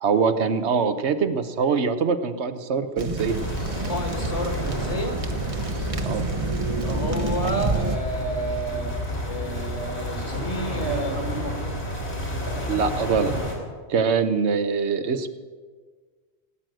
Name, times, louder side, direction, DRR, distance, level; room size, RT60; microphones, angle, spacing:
voice 1, 0.0-3.4 6.0-6.3 12.7-13.3 13.9-15.3, right 5 dB, 80° right, 9 dB, 1.2 m, -23 dB
sound 1, 3.0-8.0, right 3 dB, 35° right, 1.0 m, -29 dB
sound 2, 3.2-13.5, equal, 75° left, 3.7 m, -30 dB
voice 2, 3.9-5.2 6.6-8.9 9.2-11.6, right 1 dB, 35° left, 4 dB, 1.9 m, -30 dB
17.5 x 9.3 x 7.7 m, 1.5 s
omnidirectional pair, 1.1 m